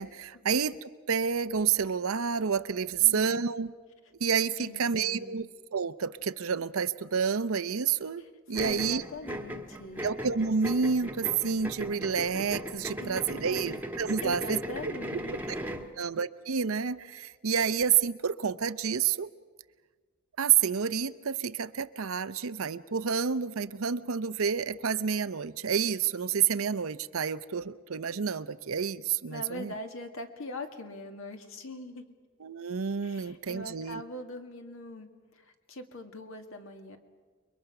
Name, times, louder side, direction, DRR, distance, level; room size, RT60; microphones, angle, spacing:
voice 1, 0.0-3.7 4.2-5.4 5.7-8.2 8.5-9.0 10.0-14.6 16.0-19.3 20.4-29.7 32.4-34.0, right 6 dB, 70° right, 13 dB, 0.7 m, -29 dB
voice 2, 4.6-5.5 8.2-8.3 8.6-10.1 13.0-13.8 14.2-16.0 29.3-32.1 33.0-37.0, left 1 dB, 65° left, 5 dB, 2.0 m, -42 dB
sound 1, 8.5-15.9, equal, 10° right, 1.3 m, -38 dB
29.5 x 22.5 x 5.9 m, 1.5 s
head